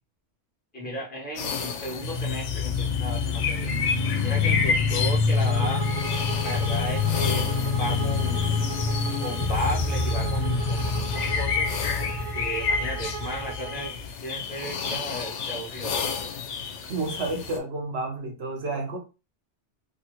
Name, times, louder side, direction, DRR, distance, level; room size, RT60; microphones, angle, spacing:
voice 1, 0.7-3.7 4.2-5.9 6.4-8.5 9.2-11.7 12.3-13.9 14.2-15.9, equal, 10° left, -4 dB, 0.8 m, -34 dB
sound 1, 1.4-17.6, left 5 dB, 85° left, 0.9 m, -32 dB
sound 2, 2.0-14.1, left 5 dB, 55° left, 0.6 m, -27 dB
Bowed string instrument, 5.4-14.0, right 7 dB, 40° right, 0.4 m, -38 dB
voice 2, 16.9-19.0, right 2 dB, 65° right, 2 dB, 1.0 m, -30 dB
2.7 x 2.6 x 2.9 m, 0.29 s
omnidirectional pair, 1.2 m